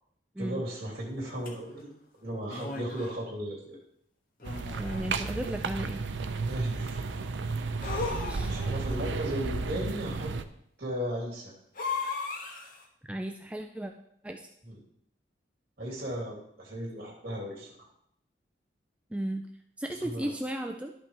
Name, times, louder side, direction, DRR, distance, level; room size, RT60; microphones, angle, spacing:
voice 1, 0.4-1.9 2.2-3.8 6.4-7.1 8.4-10.3 10.8-11.5 14.6-14.8 15.8-17.9 20.0-20.3, equal, 55° right, -2 dB, 2.8 m, -36 dB
sound 1, 1.5-1.6 2.5-3.2 4.4-5.2 7.8-8.9 11.8-12.8, left 4 dB, 50° left, 1.4 m, -36 dB
sound 2, 4.4-10.4, right 4 dB, 80° right, 0.6 m, -33 dB
voice 2, 4.8-6.0 8.3-8.5 13.0-13.9 14.2-14.5 19.1-19.5 19.8-20.9, right 1 dB, 5° right, 4 dB, 0.4 m, -35 dB
12.0 x 5.9 x 3.4 m, 0.73 s
head